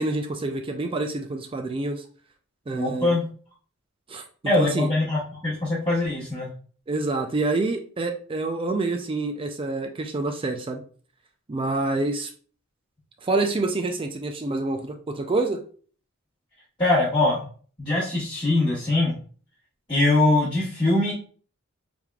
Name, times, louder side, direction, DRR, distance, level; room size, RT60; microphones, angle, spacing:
voice 1, 0.0-2.0 2.7-3.2 4.1-4.2 4.6-4.9 6.9-10.8 11.5-12.3 13.2-15.6, right 2 dB, 25° right, 5 dB, 0.4 m, -27 dB
voice 2, 2.7-3.2 4.4-6.5 16.8-17.5 17.8-19.2 19.9-21.1, left 2 dB, 20° left, -10 dB, 1.3 m, -22 dB
4.7 x 3.5 x 2.3 m, 0.43 s
head